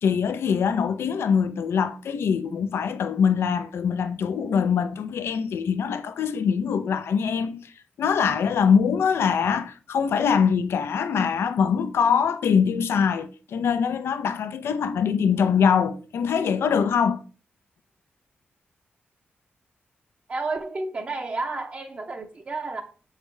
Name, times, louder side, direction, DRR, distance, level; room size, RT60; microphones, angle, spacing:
voice 1, 0.0-7.7 8.0-17.2, left 6 dB, 90° left, 0.5 m, -23 dB
voice 2, 20.3-22.8, right 3 dB, 35° right, 0.6 m, -31 dB
7.2 x 4.9 x 3.2 m
wide cardioid pair, 130°, 4 cm